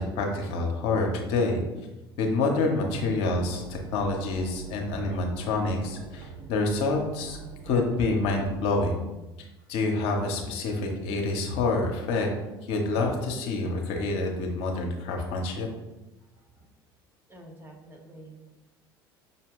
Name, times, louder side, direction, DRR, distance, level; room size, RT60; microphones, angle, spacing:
voice 1, 0.0-1.6 2.2-7.4 7.7-9.0 9.7-12.3 12.7-15.7, left 3 dB, 60° left, 1 dB, 0.9 m, -27 dB
sound 1, 2.9-8.6, right 4 dB, 60° right, 0.6 m, -44 dB
voice 2, 17.3-18.5, right 1 dB, 20° right, 1 dB, 1.0 m, -47 dB
5.6 x 2.2 x 3.7 m, 1.0 s
figure-of-eight pair, 65°, 12 cm